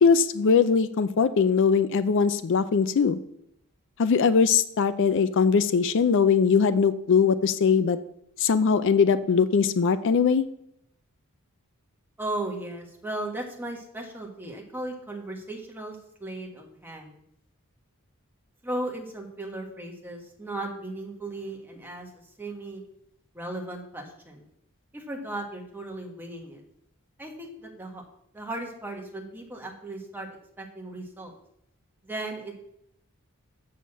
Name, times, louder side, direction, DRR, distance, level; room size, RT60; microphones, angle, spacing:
voice 1, 0.0-3.2 4.0-8.0 8.4-10.5, left 6 dB, 60° left, 13 dB, 0.4 m, -21 dB
voice 2, 12.2-17.1 18.6-22.1 22.4-22.8 23.3-24.4 24.9-26.6 27.2-28.0 28.3-31.3 32.0-32.5, right 2 dB, 10° right, 0 dB, 1.5 m, -36 dB
6.9 x 6.3 x 7.4 m, 0.76 s
head